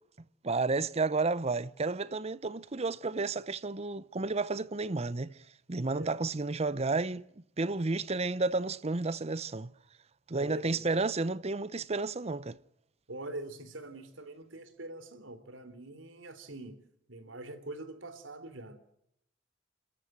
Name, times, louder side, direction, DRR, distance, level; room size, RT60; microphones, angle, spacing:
voice 1, 0.4-5.3 5.7-7.3 7.6-9.7 10.3-12.6, right 3 dB, 35° right, 0.7 m, -31 dB
voice 2, 10.4-10.9 13.1-16.8 17.1-18.8, right 1 dB, 90° right, 3.4 m, -43 dB
29.5 x 14.0 x 8.0 m
head